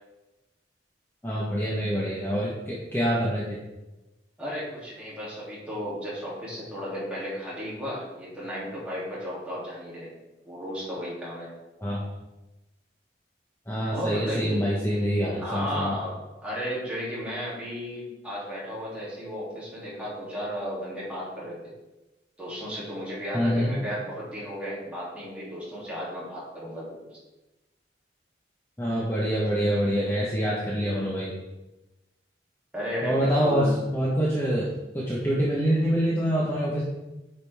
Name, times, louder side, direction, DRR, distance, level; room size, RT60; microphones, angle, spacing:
voice 1, 1.2-3.6 11.8-12.1 13.7-16.0 23.3-23.8 28.8-31.3 33.0-34.7 34.9-36.8, equal, 15° left, -6 dB, 1.1 m, -25 dB
voice 2, 4.4-10.1 10.4-11.5 13.9-14.6 15.4-21.6 22.4-27.1 32.7-33.7, equal, 5° right, -8 dB, 2.8 m, -34 dB
9.6 x 5.4 x 3.5 m, 1.0 s
head